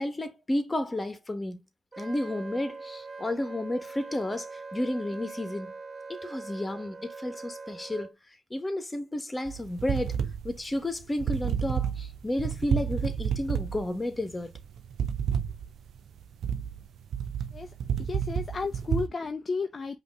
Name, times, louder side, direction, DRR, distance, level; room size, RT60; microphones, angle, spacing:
voice 1, 0.0-1.6 2.0-5.7 6.1-8.1 8.5-10.2 10.4-14.5, left 1 dB, 20° left, 1.3 m, -32 dB
Wind instrument woodwind instrument, 1.9-8.1, right 4 dB, 35° right, 1.2 m, -42 dB
sound 1, 9.5-19.1, right 8 dB, 60° right, 0.7 m, -30 dB
voice 2, 18.0-20.0, left 4 dB, 40° left, 0.5 m, -33 dB
5.2 x 2.8 x 3.5 m
hypercardioid pair, 50°, 0 cm